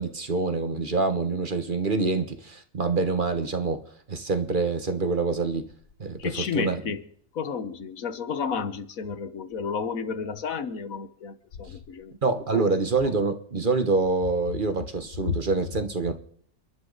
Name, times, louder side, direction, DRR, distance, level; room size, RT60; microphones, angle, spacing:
voice 1, 0.0-3.8 4.1-5.7 6.0-6.8 12.2-16.1, right 3 dB, 40° right, 1.3 m, -26 dB
voice 2, 6.2-7.0 7.3-12.1 12.5-12.6 15.3-15.4, left 6 dB, 80° left, 1.6 m, -31 dB
29.5 x 11.5 x 4.0 m
omnidirectional pair, 1.4 m